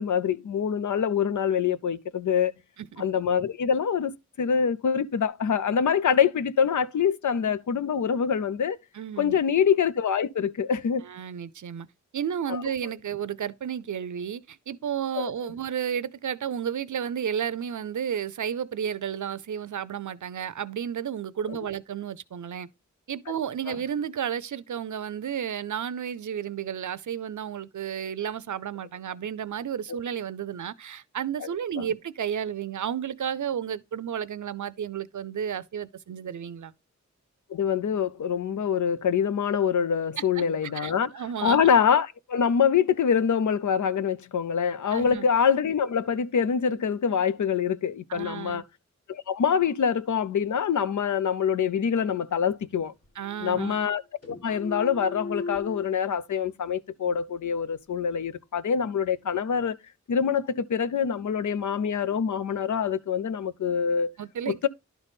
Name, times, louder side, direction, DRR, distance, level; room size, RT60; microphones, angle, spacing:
voice 1, 0.0-2.5 3.0-8.8 9.2-11.0 12.5-12.6 15.2-15.3 21.5-21.6 23.7-23.8 29.9-30.0 31.4-31.9 37.5-41.1 41.4-48.6 49.1-52.9 53.4-59.8 60.1-64.1 64.5-64.7, left 7 dB, 90° left, 0.6 m, -25 dB
voice 2, 8.9-9.4 11.0-11.9 12.1-22.7 23.1-36.7 40.4-40.5 40.7-41.6 44.9-45.3 48.1-48.6 53.2-53.8 64.2-64.7, right 8 dB, 85° right, 0.6 m, -32 dB
sound 1, 52.5-52.7 53.0-54.0 54.2-55.8, left 3 dB, 55° left, 2.1 m, -39 dB
11.5 x 4.1 x 3.5 m
wide cardioid pair, 100°, 29 cm